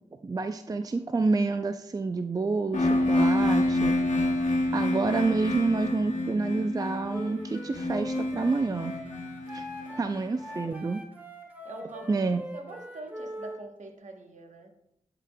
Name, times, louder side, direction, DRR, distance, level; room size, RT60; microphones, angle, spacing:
voice 1, 0.2-4.0 4.7-9.0 9.5-9.7 10.0-11.0 12.1-12.4, right 3 dB, 30° right, 8 dB, 0.4 m, -28 dB
sound 1, 2.7-10.5, left 1 dB, 75° left, 1.0 m, -28 dB
Wind instrument woodwind instrument, 7.1-13.6, equal, 15° right, 1.5 m, -42 dB
voice 2, 9.8-10.7 11.6-14.7, right 2 dB, 70° right, 4 dB, 1.0 m, -45 dB
11.0 x 5.0 x 2.2 m, 0.77 s
cardioid pair, 45°, 13 cm